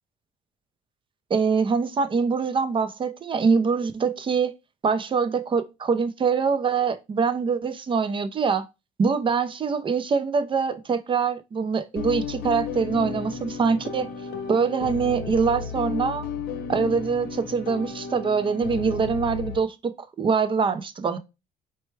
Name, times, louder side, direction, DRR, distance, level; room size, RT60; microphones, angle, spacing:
voice 1, 1.3-4.5 4.8-8.7 9.0-14.1 14.5-16.3 16.7-19.9 20.2-21.2, right 5 dB, 30° right, 0.6 m, -24 dB
sound 1, 12.0-19.6, left 6 dB, 65° left, 0.8 m, -33 dB
4.5 x 2.1 x 4.6 m
cardioid pair, 110°, 17 cm